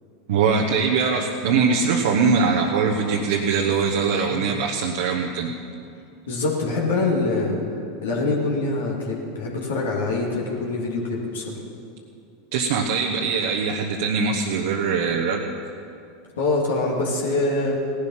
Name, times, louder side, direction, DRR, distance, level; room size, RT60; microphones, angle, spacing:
voice 1, 0.3-5.5 12.5-15.4, right 5 dB, 65° right, 1 dB, 1.1 m, -22 dB
voice 2, 6.3-7.6 8.0-11.6 16.4-17.8, left 3 dB, 75° left, -3 dB, 2.6 m, -24 dB
17.5 x 11.5 x 5.7 m, 2.5 s
hypercardioid pair, 85°, 0 cm